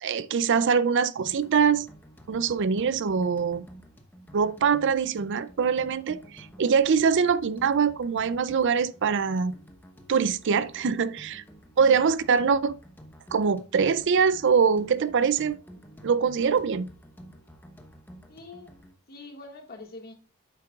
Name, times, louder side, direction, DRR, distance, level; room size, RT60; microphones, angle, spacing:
voice 1, 0.0-1.9 2.3-3.7 4.3-9.6 10.1-11.4 11.8-12.8 13.3-15.5 16.0-16.9, right 6 dB, 55° right, 0.4 m, -23 dB
sound 1, 1.2-18.9, equal, 10° left, 1.0 m, -50 dB
voice 2, 18.3-18.8 19.1-20.2, left 2 dB, 45° left, 1.8 m, -44 dB
10.0 x 7.6 x 2.4 m
head